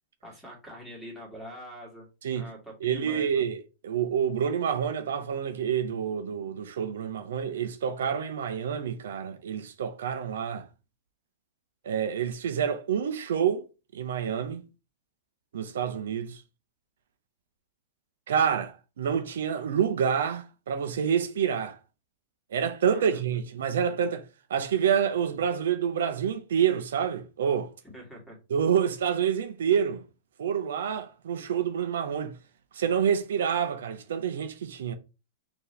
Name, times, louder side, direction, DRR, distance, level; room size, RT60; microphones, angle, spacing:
voice 1, 0.2-2.1 2.3-3.4 22.9-23.2 27.8-28.4, equal, ahead, 1.9 m, -44 dB
voice 2, 2.8-10.7 11.8-13.7 13.9-14.6 15.5-16.4 18.3-21.8 22.5-24.2 24.5-27.7 28.5-30.0 30.4-32.3 32.7-34.9, right 8 dB, 80° right, 0.5 m, -28 dB
4.4 x 2.8 x 3.2 m
hypercardioid pair, 125°, 0 cm